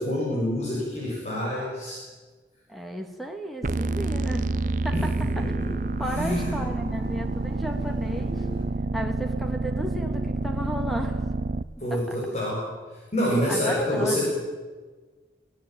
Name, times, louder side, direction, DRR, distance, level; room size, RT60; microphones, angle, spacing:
voice 1, 0.0-2.0 4.9-5.7 6.1-6.5 11.8-12.7 13.1-14.2, left 1 dB, 40° left, -4 dB, 7.0 m, -27 dB
voice 2, 2.7-5.4 6.0-8.5 8.9-11.2 11.9-12.2 13.5-14.2, equal, ahead, 4 dB, 2.7 m, -34 dB
sound 1, 3.6-8.6, right 1 dB, 55° left, 7.6 m, -44 dB
sound 2, 3.6-11.6, right 2 dB, 45° right, 0.7 m, -28 dB
24.5 x 17.5 x 9.2 m, 1.3 s
head